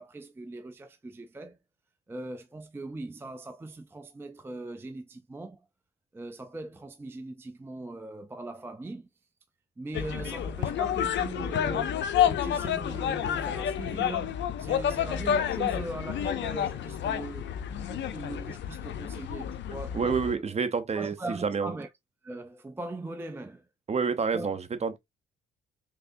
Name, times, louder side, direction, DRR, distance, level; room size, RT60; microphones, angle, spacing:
voice 1, 0.0-1.6 2.1-5.6 6.1-9.1 9.8-17.5 17.8-20.4 20.9-21.9 22.2-23.7 24.3-24.5, right 2 dB, 10° right, 0.4 m, -40 dB
sound 1, 9.9-20.3, left 9 dB, 65° left, 0.5 m, -29 dB
voice 2, 19.9-21.7 23.9-25.0, right 5 dB, 35° right, 0.7 m, -28 dB
3.4 x 3.3 x 2.6 m
cardioid pair, 90°, 20 cm